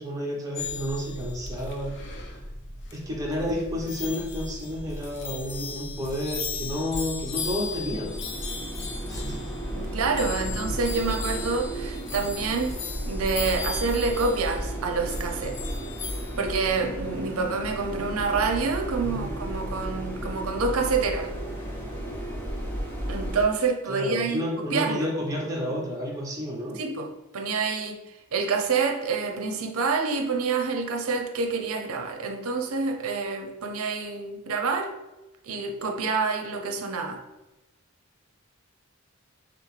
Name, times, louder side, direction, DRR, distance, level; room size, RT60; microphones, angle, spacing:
voice 1, 0.0-2.4 2.9-8.5 9.1-9.5 10.3-10.6 19.0-19.3 19.7-20.2 23.9-26.8, equal, 15° right, 0.9 m, -31 dB
sound 1, 0.6-16.9, left 3 dB, 55° left, 0.6 m, -36 dB
sound 2, 7.2-23.4, right 1 dB, 10° left, 1.0 m, -34 dB
voice 2, 9.7-15.6 16.4-21.3 23.1-25.1 26.8-27.1 27.3-28.0 28.3-34.9 35.4-37.2, right 4 dB, 70° right, 0.6 m, -27 dB
6.0 x 2.0 x 3.2 m
head